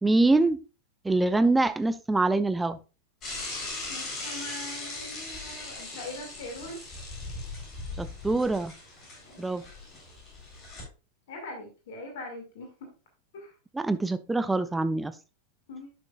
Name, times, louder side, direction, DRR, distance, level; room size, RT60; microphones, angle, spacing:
voice 1, 0.0-0.6 1.0-2.8 8.0-8.7 9.4-9.6 13.7-15.1, right 2 dB, 10° right, 13 dB, 0.4 m, -24 dB
Bicycle / Mechanisms, 3.2-10.8, left 2 dB, 30° left, 3.8 m, -39 dB
voice 2, 3.9-6.8 9.3-9.7 11.3-12.9 13.3-13.5 15.7-15.9, left 2 dB, 55° left, 3 dB, 2.1 m, -42 dB
10.5 x 6.1 x 2.4 m, 0.32 s
figure-of-eight pair, 90°, 0 cm